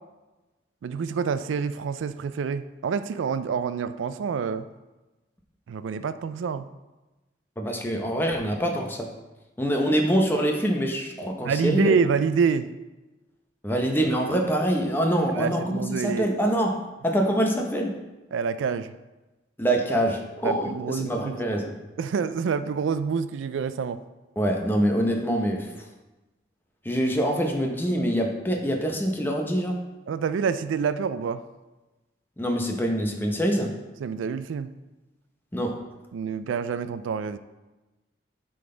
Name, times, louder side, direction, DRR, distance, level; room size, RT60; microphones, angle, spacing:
voice 1, 0.8-4.6 5.7-6.7 11.4-12.7 15.4-16.3 18.3-18.9 20.4-21.4 22.0-24.0 30.1-31.4 34.0-34.7 36.1-37.4, right 6 dB, 90° right, 13 dB, 0.3 m, -27 dB
voice 2, 7.6-9.1 9.6-12.0 13.6-17.9 19.6-21.8 24.4-25.8 26.8-29.8 32.4-33.7 35.5-35.8, equal, 10° left, 1 dB, 0.7 m, -25 dB
9.2 x 3.9 x 3.8 m, 1.1 s
head